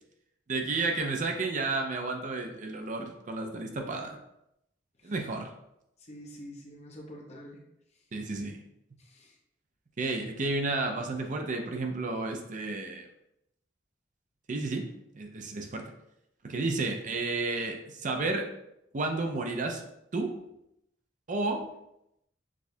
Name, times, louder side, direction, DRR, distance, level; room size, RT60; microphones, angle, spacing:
voice 1, 0.5-4.2 5.0-5.5 8.1-8.6 10.0-13.1 14.5-14.9 15.1-15.9 16.4-18.5 18.9-19.8 20.1-20.3 21.3-21.6, right 3 dB, 45° right, 3 dB, 0.5 m, -31 dB
voice 2, 6.1-7.6 9.1-9.3, equal, 35° left, 0 dB, 0.8 m, -46 dB
6.1 x 2.3 x 2.6 m, 0.81 s
head